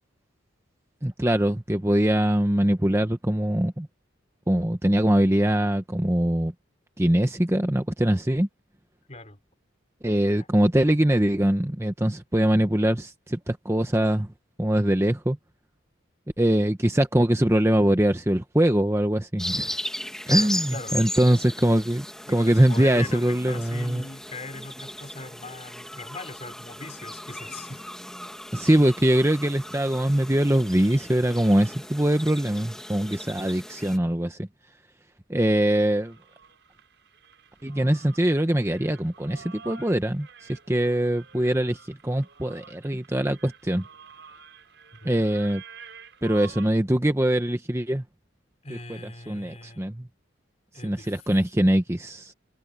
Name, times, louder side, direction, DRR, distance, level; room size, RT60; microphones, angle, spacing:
voice 1, 1.0-3.9 4.5-6.5 7.0-8.5 10.0-14.3 14.6-15.4 16.4-19.7 20.3-24.0 28.5-34.5 35.3-36.1 37.6-43.8 45.0-45.6 46.2-48.0 48.7-48.8 49.3-50.1 50.8-52.3, right 1 dB, 15° right, 0.9 m, -23 dB
voice 2, 9.1-9.4 20.3-21.0 22.3-27.8 45.0-45.4 48.6-49.8 50.7-51.3, left 2 dB, 35° left, 3.6 m, -40 dB
sound 1, 19.4-34.0, left 1 dB, 5° left, 2.2 m, -36 dB
sound 2, 35.6-46.7, right 6 dB, 60° right, 7.7 m, -49 dB
head